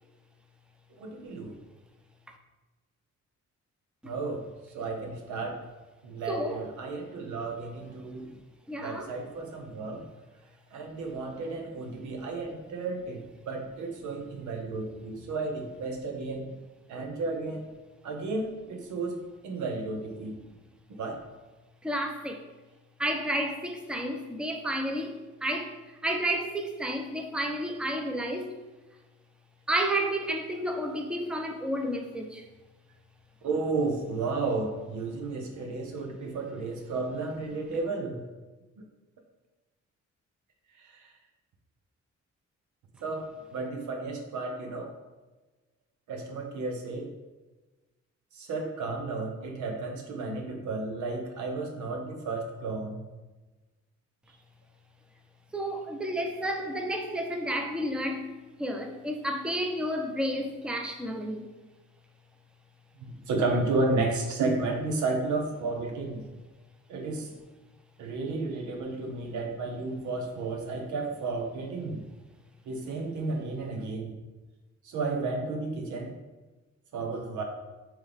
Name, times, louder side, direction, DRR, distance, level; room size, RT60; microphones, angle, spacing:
voice 1, 1.0-1.5 4.0-4.5 4.7-5.6 6.0-8.3 8.8-10.0 10.7-16.5 16.9-17.7 18.0-20.4 21.0-21.2 33.4-38.2 40.8-41.1 43.0-44.9 46.1-47.1 48.3-53.0 63.0-66.2 66.9-67.3 68.0-72.0 72.7-74.2 74.8-76.1 76.9-77.4, right 3 dB, 90° right, 3 dB, 1.0 m, -32 dB
voice 2, 6.3-6.6 8.7-9.1 21.8-22.4 23.0-25.7 26.0-28.6 29.7-32.4 55.5-61.5, right 1 dB, 5° right, 3 dB, 0.7 m, -31 dB
8.9 x 3.1 x 3.5 m, 1.2 s
cardioid pair, 95°, 29 cm